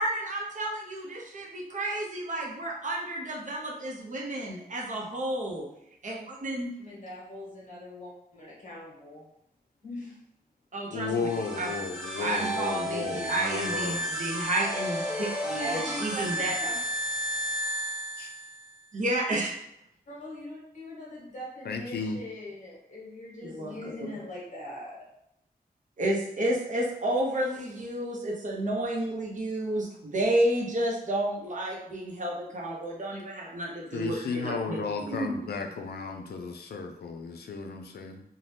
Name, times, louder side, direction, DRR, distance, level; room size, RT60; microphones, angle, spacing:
voice 1, 0.0-5.7 6.0-6.7 10.7-11.3 11.6-11.7 12.2-16.5 18.9-19.6 23.4-24.1 26.0-35.4, right 1 dB, 50° right, -2 dB, 0.6 m, -31 dB
voice 2, 6.8-9.3 9.8-10.2 15.6-16.8 20.1-25.1, equal, 50° left, -5 dB, 1.2 m, -41 dB
voice 3, 10.9-14.1 18.2-18.3 21.6-22.2 33.9-38.2, left 4 dB, 80° left, 5 dB, 0.4 m, -34 dB
sound 1, 11.0-18.7, equal, 5° right, 0.8 m, -33 dB
2.7 x 2.1 x 3.3 m, 0.77 s
wide cardioid pair, 130°, 16 cm